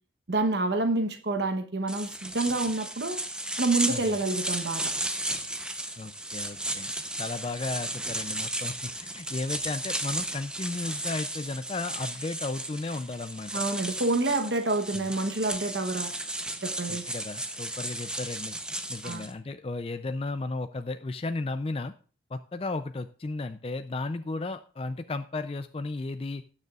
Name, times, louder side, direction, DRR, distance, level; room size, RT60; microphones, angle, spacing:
voice 1, 0.3-3.2 3.6-4.9 13.5-16.1 16.6-17.0 19.0-19.3, right 2 dB, 65° right, 6 dB, 1.0 m, -28 dB
sound 1, 1.9-19.3, right 1 dB, 5° right, 0.7 m, -34 dB
voice 2, 3.9-4.2 6.0-6.9 7.2-13.6 14.9-15.1 16.9-18.6 18.9-21.9 22.3-26.4, left 3 dB, 30° left, 9 dB, 0.4 m, -34 dB
18.5 x 6.6 x 2.4 m, 0.39 s
head